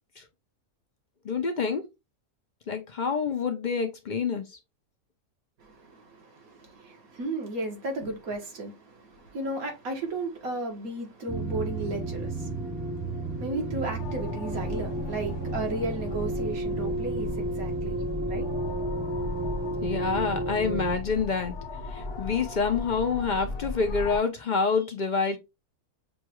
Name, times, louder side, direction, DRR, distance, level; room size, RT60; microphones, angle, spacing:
voice 1, 1.2-1.8 2.7-4.6 19.8-21.5 21.9-25.4, left 5 dB, 55° left, 0.5 m, -27 dB
voice 2, 5.6-18.0 18.3-18.5, right 2 dB, 75° right, 1.8 m, -34 dB
sound 1, 11.3-21.0, right 2 dB, 15° right, 0.5 m, -32 dB
sound 2, 14.0-24.2, left 3 dB, 90° left, 1.3 m, -37 dB
6.4 x 2.3 x 2.9 m
omnidirectional pair, 1.5 m